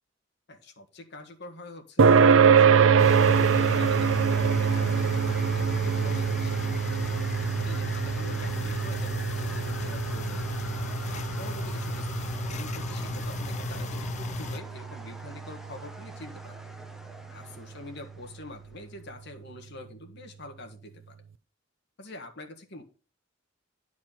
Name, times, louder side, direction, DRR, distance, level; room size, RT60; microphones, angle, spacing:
voice 1, 0.5-7.0 7.6-10.4 11.1-16.7 17.3-21.2 22.0-22.8, left 2 dB, 60° left, 5 dB, 1.7 m, -45 dB
sound 1, 2.0-16.9, right 6 dB, 85° right, 0.5 m, -25 dB
sound 2, 3.0-14.6, left 2 dB, 35° left, 0.4 m, -35 dB
sound 3, 3.0-19.4, equal, ahead, 0.9 m, -45 dB
10.5 x 4.6 x 5.8 m, 0.37 s
head